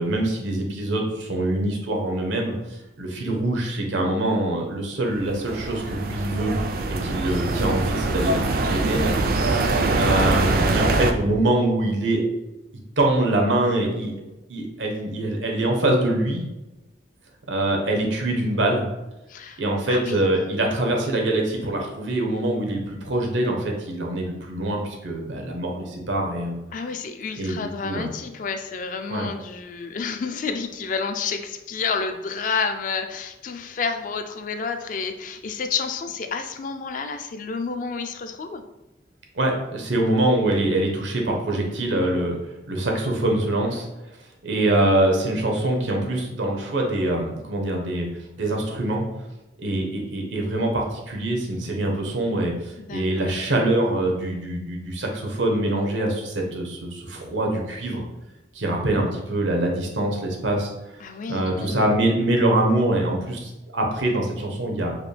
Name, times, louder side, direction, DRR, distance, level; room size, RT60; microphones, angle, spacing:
voice 1, 0.0-2.5 3.0-6.6 6.9-9.1 9.4-9.6 10.0-12.2 13.0-14.2 14.5-16.4 17.5-18.9 19.6-26.6 27.4-28.1 29.1-29.3 39.3-42.4 42.7-43.9 44.4-48.1 48.4-49.0 49.6-58.1 58.5-60.7 61.3-64.9, right 1 dB, 85° right, 1 dB, 0.8 m, -24 dB
sound 1, 5.1-11.1, right 2 dB, 50° right, 0.3 m, -23 dB
voice 2, 9.5-10.0 19.3-19.6 19.9-20.2 26.7-38.6 52.8-53.2 61.0-61.8, left 5 dB, 45° left, 7 dB, 0.3 m, -30 dB
4.8 x 2.2 x 3.3 m, 0.99 s
head